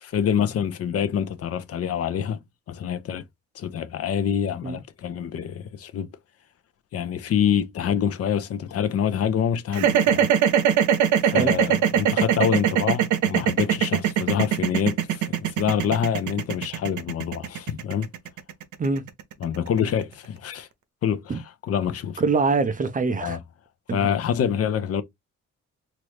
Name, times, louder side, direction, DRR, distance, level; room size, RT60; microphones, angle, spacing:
voice 1, 0.0-2.4 2.7-3.2 3.6-6.1 6.9-10.3 11.2-18.1 19.4-20.7 21.0-22.2 23.2-23.4 23.9-25.0, left 8 dB, 50° left, 0.5 m, -26 dB
sound 1, 9.7-19.9, right 9 dB, 75° right, 0.6 m, -21 dB
voice 2, 22.2-23.4 23.9-24.0, right 4 dB, 25° right, 0.5 m, -24 dB
3.0 x 2.5 x 3.2 m
cardioid pair, 90°, 30 cm